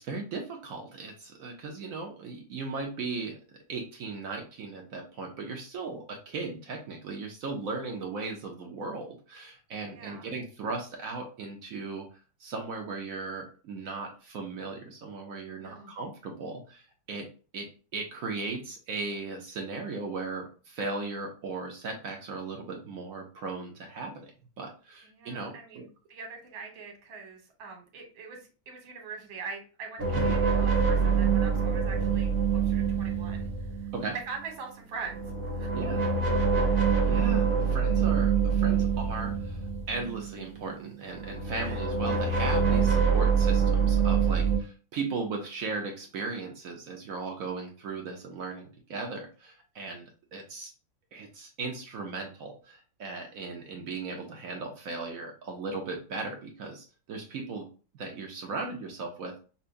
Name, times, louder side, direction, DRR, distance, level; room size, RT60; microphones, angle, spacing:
voice 1, 0.0-3.4 3.7-12.1 12.4-24.3 24.6-25.9 30.1-30.4 33.9-34.2 35.7-36.1 37.0-39.6 39.9-50.7 51.1-57.7 57.9-59.4, right 3 dB, 70° right, 2 dB, 0.8 m, -37 dB
voice 2, 9.8-10.3 15.5-15.9 25.0-33.5 33.8-33.9 34.3-35.2 35.5-35.7 41.6-41.8, right 5 dB, 85° right, 2 dB, 1.8 m, -43 dB
sound 1, 30.0-34.2 35.0-40.7 41.1-44.6, right 6 dB, 20° right, 0.5 m, -25 dB
5.6 x 2.1 x 2.5 m, 0.36 s
omnidirectional pair, 2.1 m